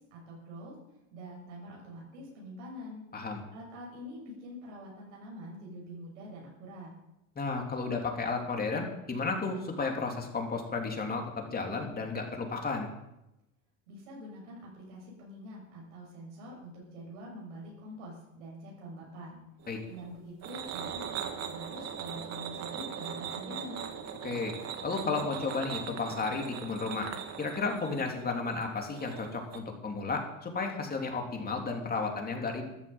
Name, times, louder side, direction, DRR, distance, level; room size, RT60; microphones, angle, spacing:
voice 1, 0.1-0.7 1.1-3.0 3.5-6.9 13.9-19.4 19.9-23.8, equal, 85° right, -3 dB, 6.7 m, -45 dB
voice 2, 7.3-12.9 19.7-19.8 24.2-24.5 24.8-27.1 27.4-32.6, left 4 dB, 25° left, 2 dB, 3.3 m, -33 dB
sound 1, 19.6-29.6, right 8 dB, 45° right, 2.1 m, -40 dB
13.5 x 9.8 x 8.0 m, 0.88 s
supercardioid pair, 100°, 36 cm